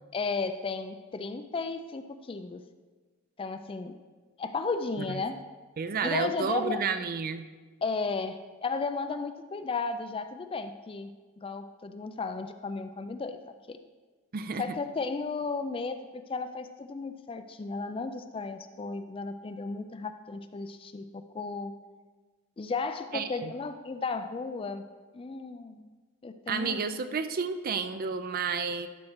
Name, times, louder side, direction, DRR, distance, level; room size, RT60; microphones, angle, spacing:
voice 1, 0.1-2.6 3.4-4.0 4.4-5.4 6.0-6.8 7.8-11.1 11.4-13.4 13.7-13.8 14.6-21.1 21.3-21.7 22.6-24.8 25.1-25.9 26.2-26.9, left 4 dB, 25° left, 9 dB, 0.3 m, -34 dB
voice 2, 5.8-7.4 14.3-14.7 23.1-23.5 26.5-28.9, right 5 dB, 40° right, 10 dB, 0.4 m, -31 dB
12.5 x 4.2 x 4.5 m, 1.4 s
head